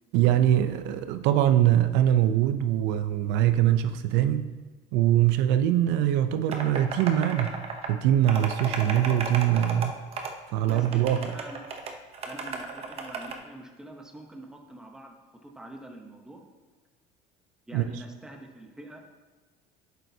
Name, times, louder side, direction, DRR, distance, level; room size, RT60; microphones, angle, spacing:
voice 1, 0.1-4.5 4.9-7.6 7.9-10.0 10.5-11.3 17.7-18.0, right 11 dB, 75° right, 10 dB, 0.5 m, -23 dB
sound 1, 6.5-7.9 8.2-9.9 10.1-10.3 10.7-13.3, right 5 dB, 35° right, 0.8 m, -34 dB
voice 2, 10.6-11.6 12.3-15.2 15.4-16.4 17.7-19.0, right 1 dB, 5° right, 2 dB, 0.8 m, -45 dB
11.0 x 8.1 x 2.7 m, 1.3 s
cardioid pair, 160°, 19 cm